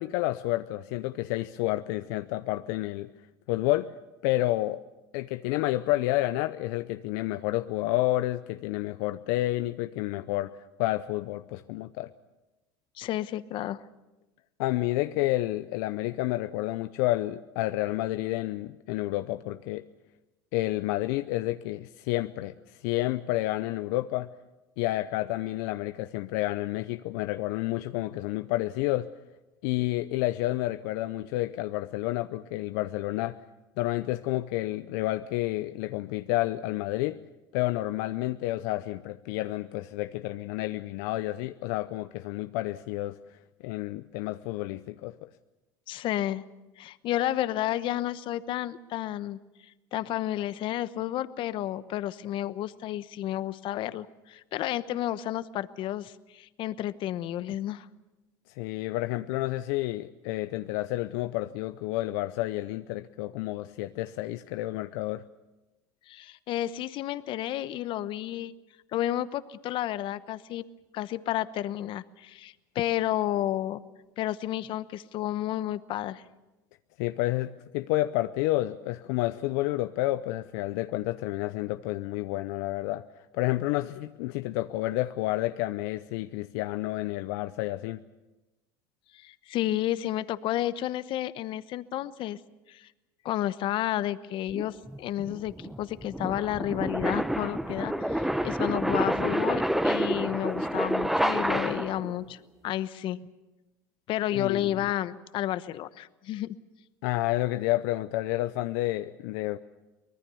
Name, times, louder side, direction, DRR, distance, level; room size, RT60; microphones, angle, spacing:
voice 1, 0.0-3.1 3.5-3.9 4.2-4.8 5.1-10.5 10.8-12.1 14.6-19.8 20.5-24.3 24.8-29.1 29.6-33.4 33.8-37.2 37.5-43.2 43.6-45.3 58.6-65.2 77.0-83.0 83.3-88.0 104.3-104.8 107.0-109.6, left 17 dB, 70° left, 10 dB, 0.7 m, -30 dB
voice 2, 13.0-13.8 45.9-46.4 46.8-49.4 49.9-57.9 66.1-68.5 68.9-70.6 70.9-73.8 74.2-76.2 89.1-92.4 92.7-92.9 93.2-103.2 104.1-106.6, left 13 dB, 50° left, 15 dB, 1.0 m, -31 dB
sound 1, 94.5-102.1, equal, 5° right, 0.9 m, -28 dB
24.0 x 20.0 x 7.0 m, 1.1 s
hypercardioid pair, 95°, 11 cm